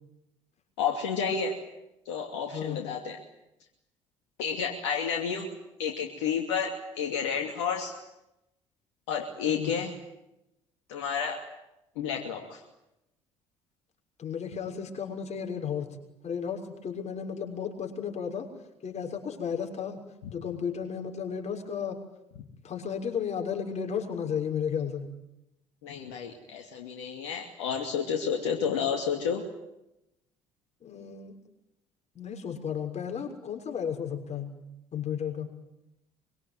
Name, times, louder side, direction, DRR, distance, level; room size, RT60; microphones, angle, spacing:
voice 1, 0.8-1.6 2.1-3.2 4.4-5.5 5.8-7.9 9.1-9.9 10.9-11.4 12.0-12.6 25.8-29.4, left 6 dB, 75° left, 2 dB, 2.7 m, -30 dB
voice 2, 2.5-2.9 9.5-9.7 14.2-16.0 16.2-18.5 18.8-20.0 20.3-22.0 22.6-25.1 30.8-31.4 32.1-34.5 34.9-35.5, left 7 dB, 45° left, 3 dB, 6.4 m, -33 dB
24.5 x 24.0 x 9.2 m, 0.88 s
hypercardioid pair, 55°, 16 cm